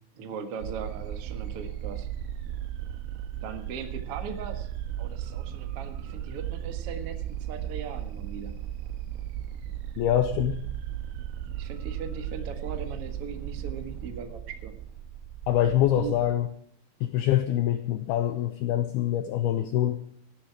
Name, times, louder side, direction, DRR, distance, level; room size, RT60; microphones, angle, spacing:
voice 1, 0.1-2.1 3.4-4.7 5.0-7.2 7.5-8.5 11.6-14.7 16.0-16.2, right 6 dB, 70° right, 6 dB, 1.3 m, -39 dB
sound 1, 0.6-16.3, right 10 dB, 90° right, 3.3 m, -36 dB
voice 2, 10.0-10.6 15.5-16.5 17.0-20.0, left 11 dB, 85° left, 8 dB, 2.2 m, -25 dB
17.5 x 10.0 x 4.8 m, 0.64 s
omnidirectional pair, 5.5 m